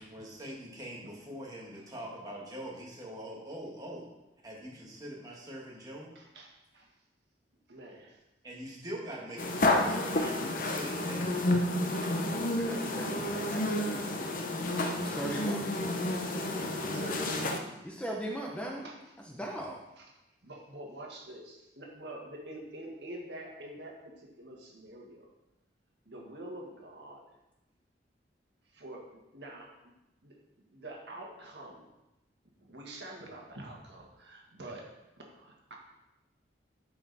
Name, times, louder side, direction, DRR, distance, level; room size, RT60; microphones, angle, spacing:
voice 1, 0.0-4.1 4.4-6.1 8.4-11.5, equal, 20° right, -3 dB, 1.7 m, -43 dB
voice 2, 6.2-6.9 7.7-8.2 9.6-9.7 10.2-10.4 12.0-12.4 14.2-14.4 16.5-17.7 18.8-19.0 20.0-20.1 20.4-25.3 26.1-27.3 28.7-29.1 29.3-29.8 30.2-30.4 30.7-31.9 32.6-34.8 35.3-35.7, right 1 dB, 75° right, -1 dB, 1.7 m, -46 dB
sound 1, 9.4-17.6, left 1 dB, 50° left, 0.8 m, -30 dB
voice 3, 12.2-14.1 14.9-15.6 17.8-18.9 19.3-19.8, right 1 dB, 5° left, 0 dB, 0.8 m, -39 dB
11.0 x 4.9 x 4.1 m, 0.97 s
head